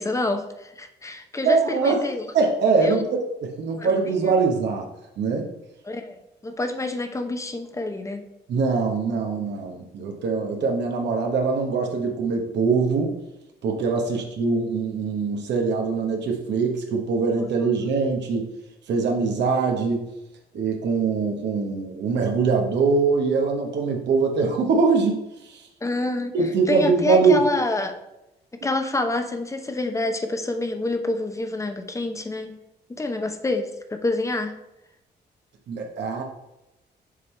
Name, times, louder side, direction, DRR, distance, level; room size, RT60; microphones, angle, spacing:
voice 1, 0.0-2.2 2.8-3.0 3.8-3.9 4.2-4.3 5.8-8.2 25.8-26.3 26.7-28.0 28.6-32.5 33.0-34.5, left 2 dB, 15° left, 7 dB, 0.7 m, -27 dB
voice 2, 1.4-2.0 2.3-4.9 5.2-5.5 8.5-13.1 13.6-18.5 18.9-20.1 20.5-25.7 26.3-27.3 35.7-36.2, right 4 dB, 75° right, 1 dB, 1.0 m, -23 dB
6.7 x 3.4 x 4.3 m, 0.92 s
cardioid pair, 110°, 18 cm